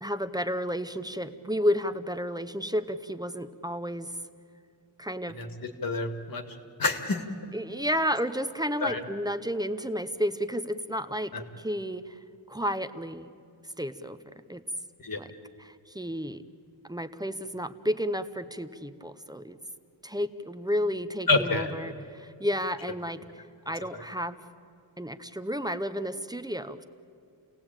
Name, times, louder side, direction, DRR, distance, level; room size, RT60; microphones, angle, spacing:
voice 1, 0.0-4.1 5.0-5.4 7.5-12.2 12.5-13.3 13.8-14.2 14.5-14.6 15.2-15.3 15.6-16.4 16.9-19.6 20.0-24.4 25.0-26.8, equal, 10° right, 10 dB, 0.8 m, -32 dB
voice 2, 5.8-6.4 6.8-7.2 8.8-9.0 11.3-11.4 15.0-15.2 21.3-21.7 23.9-24.0, left 3 dB, 45° left, 6 dB, 2.2 m, -27 dB
29.5 x 18.0 x 8.9 m, 2.4 s
wide cardioid pair, 140°, 46 cm